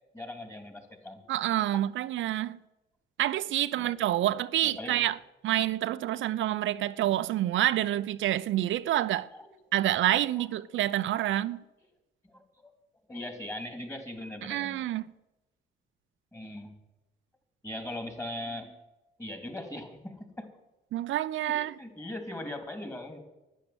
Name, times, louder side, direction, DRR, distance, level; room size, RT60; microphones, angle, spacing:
voice 1, 0.1-1.2 3.8-3.9 4.6-5.1 9.3-9.5 9.8-10.0 10.4-10.5 11.2-11.3 12.2-12.7 13.1-14.8 16.3-16.7 17.6-18.8 19.2-20.5 21.5-23.2, left 1 dB, 15° left, 3.3 m, -40 dB
voice 2, 1.3-2.6 3.2-5.2 5.4-9.3 9.7-11.6 14.4-15.1 20.9-21.7, right 13 dB, 75° right, 0.6 m, -28 dB
11.5 x 10.0 x 9.6 m
cardioid pair, 90°, 20 cm